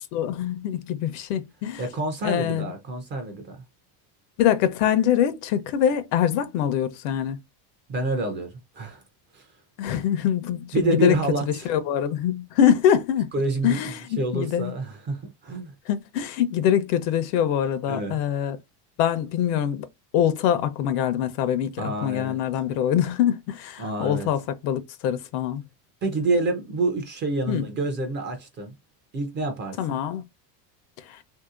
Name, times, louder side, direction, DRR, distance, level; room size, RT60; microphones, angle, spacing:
voice 1, 0.1-1.8 2.2-2.6 4.4-7.4 9.8-11.2 11.6-13.3 13.6-14.7 15.9-18.6 19.0-19.9 20.1-25.6 27.5-27.7 29.8-30.3 31.1-31.2, left 10 dB, 70° left, 0.7 m, -24 dB
voice 2, 1.8-3.6 7.9-9.0 9.3-9.5 10.7-11.7 13.3-15.7 17.9-18.2 21.8-22.4 23.8-24.3 26.0-28.8 29.1-30.0, right 2 dB, 25° right, 0.4 m, -28 dB
3.2 x 2.8 x 2.4 m
cardioid pair, 160°, 49 cm